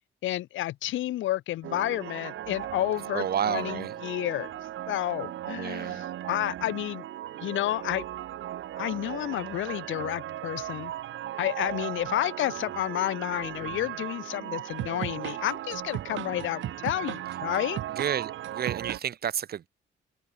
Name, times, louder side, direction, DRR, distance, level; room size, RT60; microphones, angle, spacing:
voice 1, 0.2-7.0 7.4-8.0 8.8-10.9 11.4-17.8, left 14 dB, 80° left, 0.8 m, -31 dB
sound 1, 1.6-19.0, right 12 dB, 75° right, 2.5 m, -36 dB
voice 2, 3.1-4.0 5.5-6.0 13.6-13.9 18.0-19.7, right 9 dB, 50° right, 1.1 m, -31 dB
open air
cardioid pair, 90°, 20 cm